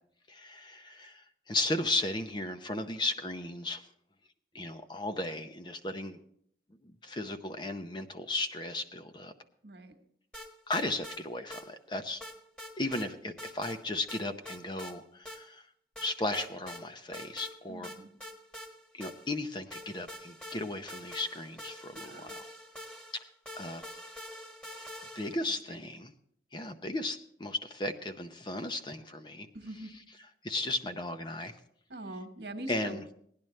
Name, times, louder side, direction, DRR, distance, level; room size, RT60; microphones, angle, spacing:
voice 1, 0.3-3.9 4.5-6.2 6.8-9.3 10.7-12.2 12.8-15.7 16.0-17.9 18.9-22.5 23.1-23.2 23.6-23.9 25.1-26.1 26.5-29.5 30.4-31.6 32.7-33.0, left 2 dB, 25° left, 7 dB, 0.7 m, -35 dB
voice 2, 9.6-10.0 17.7-18.1 21.9-22.4 25.3-25.4 25.7-25.8 29.5-29.9 31.9-33.0, right 1 dB, 70° right, 5 dB, 1.4 m, -43 dB
sound 1, 10.3-11.2 11.5-11.6 12.2-13.1 13.4-13.8 14.1-14.9 15.3-15.4 16.0-16.8 17.1-17.5 17.8-19.4 19.7-25.5, equal, 5° left, 1.4 m, -45 dB
17.5 x 10.5 x 3.2 m, 0.66 s
head